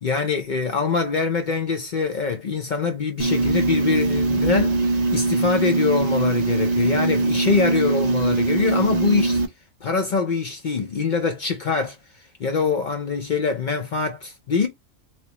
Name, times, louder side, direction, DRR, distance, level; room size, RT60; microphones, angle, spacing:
voice 1, 0.0-9.4 9.8-12.0 12.4-14.7, left 5 dB, 65° left, 0.4 m, -24 dB
sound 1, 3.2-9.5, right 3 dB, 70° right, 0.4 m, -21 dB
3.1 x 2.9 x 2.9 m
omnidirectional pair, 1.4 m